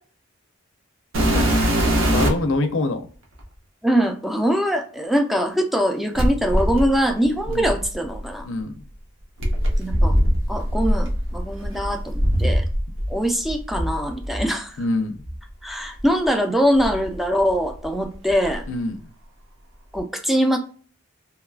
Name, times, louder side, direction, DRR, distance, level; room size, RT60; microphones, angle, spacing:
sound 1, 1.1-2.5 3.4-3.5 6.1-8.2 9.4-13.1 13.4-14.5 15.2-15.4 16.0-16.1 16.8-17.9 18.1-18.6 19.9-20.0, equal, 65° right, 0.8 m, -22 dB
voice 1, 2.1-3.1 7.5-7.7 8.4-8.7 14.8-15.2 18.7-19.0, left 2 dB, 65° left, 8 dB, 0.5 m, -24 dB
voice 2, 3.8-8.5 9.8-10.2 10.5-12.6 13.1-14.8 15.6-18.6 19.9-20.6, equal, ahead, 4 dB, 0.3 m, -22 dB
2.9 x 2.3 x 2.2 m, 0.42 s
head